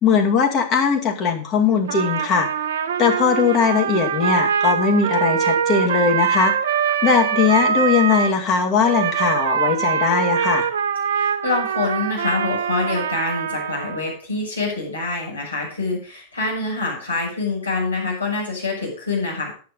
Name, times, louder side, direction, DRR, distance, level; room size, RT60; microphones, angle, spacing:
voice 1, 0.0-2.5 3.0-6.5 7.0-10.7, left 6 dB, 35° left, 1 dB, 2.2 m, -19 dB
Trumpet, 1.9-8.3 8.8-14.1, right 8 dB, 60° right, 0.7 m, -23 dB
voice 2, 11.1-19.5, left 3 dB, 80° left, -5 dB, 7.5 m, -26 dB
10.5 x 8.5 x 5.3 m, 0.40 s
figure-of-eight pair, 90°, 0 cm